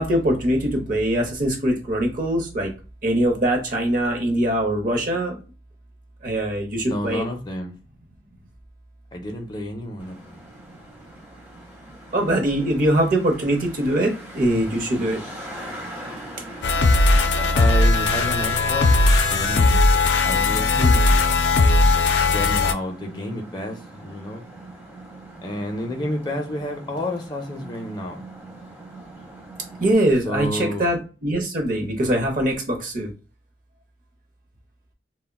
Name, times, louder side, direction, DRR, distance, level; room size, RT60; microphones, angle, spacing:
voice 1, 0.0-2.7 3.0-5.4 6.2-7.2 12.1-15.2 20.7-21.0 29.8-33.1, right 1 dB, 50° right, 0.7 m, -22 dB
voice 2, 6.8-7.7 9.1-10.4 17.4-19.0 19.3-19.9 20.2-20.8 22.3-24.4 25.4-28.2 30.2-30.9, left 1 dB, 25° left, 0.4 m, -30 dB
Traffic noise roadway noise, 10.0-30.0, right 1 dB, 10° right, 0.7 m, -42 dB
sound 1, 16.6-22.7, left 3 dB, 90° left, 0.4 m, -18 dB
3.5 x 2.1 x 2.2 m
head